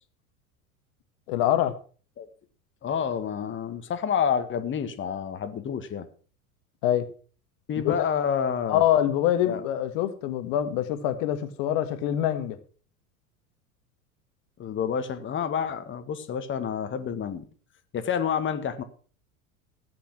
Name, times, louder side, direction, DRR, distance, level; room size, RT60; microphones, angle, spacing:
voice 1, 1.3-1.8 6.8-7.1 7.8-7.9 8.7-12.6, left 11 dB, 50° left, 10 dB, 1.8 m, -25 dB
voice 2, 2.8-6.1 7.7-8.8 9.4-9.6 14.6-17.4 17.9-18.8, left 7 dB, 25° left, 9 dB, 1.8 m, -28 dB
14.5 x 8.8 x 6.0 m, 0.41 s
figure-of-eight pair, 80°, 43 cm